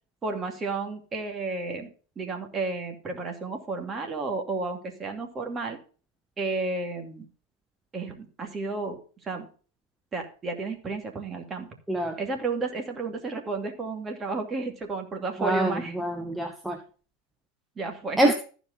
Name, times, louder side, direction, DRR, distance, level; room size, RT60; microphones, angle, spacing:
voice 1, 0.2-1.9 2.2-5.8 6.4-7.3 7.9-9.5 10.1-11.7 12.2-15.9 17.8-18.2, right 3 dB, 20° right, 3 dB, 2.6 m, -32 dB
voice 2, 15.4-16.8 18.2-18.3, right 1 dB, 5° right, 4 dB, 1.0 m, -25 dB
14.0 x 5.1 x 5.5 m, 0.39 s
figure-of-eight pair, 85°, 0 cm